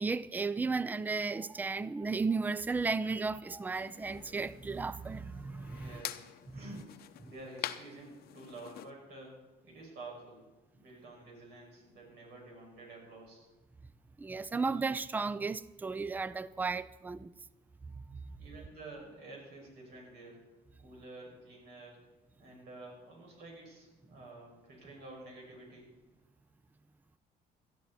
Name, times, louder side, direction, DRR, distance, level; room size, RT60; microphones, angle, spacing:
voice 1, 0.0-6.0 6.5-6.6 14.2-17.4 17.9-18.2, right 4 dB, 10° right, 0.4 m, -34 dB
sound 1, 3.7-8.9, left 12 dB, 65° left, 0.7 m, -46 dB
voice 2, 5.7-10.5 10.8-13.5 18.4-20.4 20.8-22.0 22.4-25.9, right 2 dB, 80° right, 6.2 m, -50 dB
17.5 x 13.0 x 4.2 m
cardioid pair, 110°, 17 cm